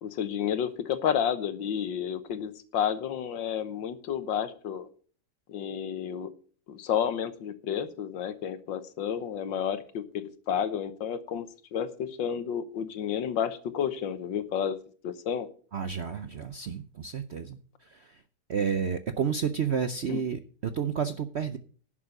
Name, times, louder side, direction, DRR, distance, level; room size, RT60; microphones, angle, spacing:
voice 1, 0.0-4.9 5.5-6.3 6.7-14.8 15.0-15.5 20.1-20.2, left 8 dB, 85° left, 12 dB, 1.8 m, -31 dB
voice 2, 15.7-18.2 18.5-21.6, right 7 dB, 65° right, 10 dB, 0.6 m, -31 dB
11.0 x 7.3 x 6.5 m, 0.42 s
omnidirectional pair, 2.0 m